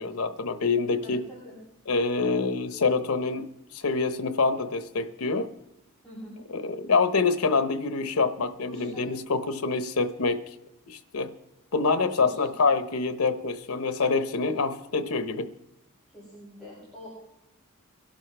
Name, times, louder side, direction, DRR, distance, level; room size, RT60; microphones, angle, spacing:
voice 1, 0.0-1.2 1.9-3.5 3.7-5.5 6.5-10.4 10.9-11.3 11.7-15.5, left 4 dB, 85° left, 10 dB, 0.9 m, -26 dB
voice 2, 1.0-1.6 6.0-6.4 8.6-9.1 12.2-12.5 16.1-17.2, left 1 dB, 5° left, -10 dB, 6.9 m, -45 dB
23.5 x 11.5 x 3.4 m, 0.89 s
head